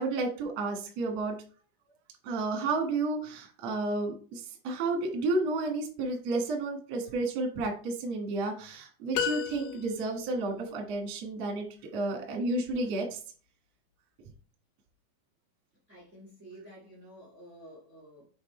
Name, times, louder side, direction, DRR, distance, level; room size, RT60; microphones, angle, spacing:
voice 1, 0.0-1.4 2.2-11.6 11.9-13.2, right 2 dB, 75° right, 1.5 m, -31 dB
sound 1, 9.1-10.3, left 8 dB, 85° left, 3.2 m, -33 dB
voice 2, 15.9-18.3, right 1 dB, 60° right, 0.7 m, -51 dB
7.9 x 3.5 x 4.3 m
omnidirectional pair, 5.6 m